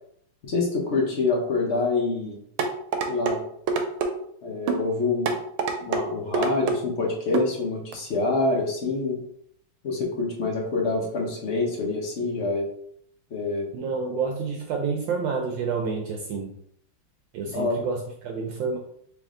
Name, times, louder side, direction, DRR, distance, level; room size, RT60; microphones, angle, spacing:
voice 1, 0.4-2.4 3.1-3.4 4.4-5.3 5.8-9.2 9.8-12.7 13.3-13.7 17.5-17.8, left 3 dB, 55° left, -1 dB, 0.8 m, -26 dB
sound 1, 2.6-3.4 3.7-4.1 4.7-4.8 5.3-6.0 6.3-6.8 7.3-7.5 7.9-8.0, right 4 dB, 90° right, 1.5 m, -25 dB
voice 2, 13.7-16.5 17.3-18.8, right 5 dB, 75° right, 2 dB, 1.2 m, -29 dB
3.5 x 3.2 x 3.6 m, 0.67 s
omnidirectional pair, 2.2 m